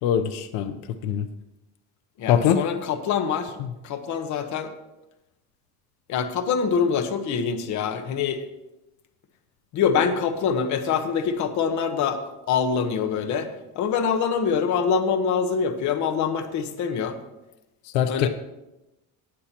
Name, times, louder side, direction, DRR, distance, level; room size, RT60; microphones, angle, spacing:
voice 1, 0.0-0.8 1.0-1.3 2.3-2.6 17.9-18.3, left 9 dB, 90° left, 10 dB, 0.8 m, -22 dB
voice 2, 2.2-3.6 3.8-4.7 6.1-8.4 9.7-12.2 12.5-13.5 13.7-17.2 18.1-18.3, left 6 dB, 50° left, 8 dB, 1.2 m, -24 dB
18.5 x 8.4 x 3.0 m, 0.97 s
cardioid pair, 160°, 38 cm